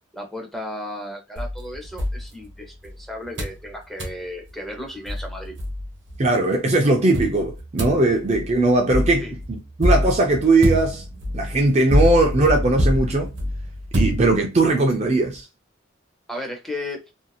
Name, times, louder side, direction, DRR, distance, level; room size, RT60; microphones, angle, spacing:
voice 1, 0.1-5.5 9.2-9.3 16.3-17.0, left 1 dB, ahead, 0.7 m, -34 dB
sound 1, 1.4-2.9 3.4-3.6 4.0-4.2 4.8-4.9 5.1-6.2 7.1-14.7, equal, 65° right, 1.0 m, -25 dB
voice 2, 6.2-11.0 11.3-13.3 13.9-15.4, right 2 dB, 35° right, 0.5 m, -19 dB
2.8 x 2.7 x 2.3 m
head